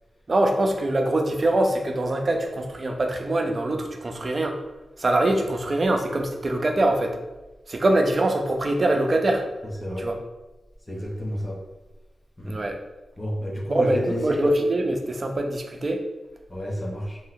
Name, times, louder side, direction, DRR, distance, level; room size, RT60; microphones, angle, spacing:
voice 1, 0.3-4.6 5.0-7.2 7.7-9.5 10.0-10.1 12.5-12.8 13.7-16.0, right 1 dB, 50° right, 4 dB, 0.5 m, -23 dB
voice 2, 10.9-11.6 12.4-12.6 13.2-14.4 16.5-17.2, equal, 25° left, -1 dB, 0.8 m, -30 dB
2.7 x 2.0 x 3.9 m, 1.1 s
cardioid pair, 45°, 0 cm